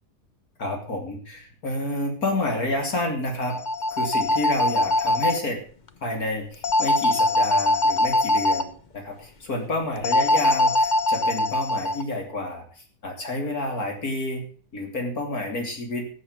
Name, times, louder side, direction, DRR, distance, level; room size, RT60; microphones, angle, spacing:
voice 1, 0.6-3.6 3.9-5.6 6.0-12.6 13.0-14.5 14.7-16.1, left 1 dB, 80° left, 2 dB, 3.6 m, -29 dB
sound 1, 3.4-5.4 6.6-8.6 10.0-12.0, left 1 dB, 40° left, 0.8 m, -22 dB
16.5 x 7.3 x 6.7 m, 0.42 s
omnidirectional pair, 1.5 m